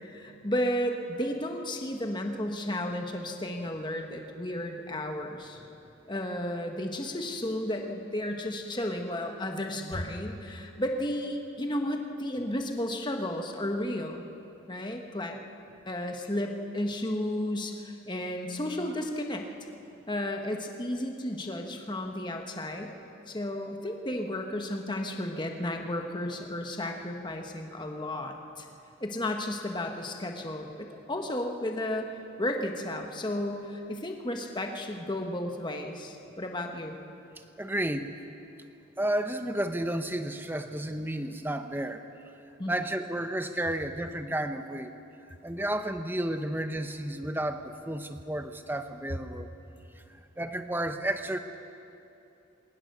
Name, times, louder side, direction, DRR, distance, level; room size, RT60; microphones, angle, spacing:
voice 1, 0.0-5.6 6.1-14.2 14.7-15.4 15.9-19.4 20.1-22.9 23.3-28.7 29.0-32.1 32.4-37.0 42.6-42.8, left 1 dB, 20° left, 3 dB, 1.3 m, -33 dB
voice 2, 37.4-38.1 39.0-42.0 42.7-44.9 45.4-49.5 49.9-50.0 50.4-51.4, right 1 dB, 10° right, 8 dB, 0.8 m, -32 dB
21.5 x 19.0 x 6.7 m, 2.8 s
head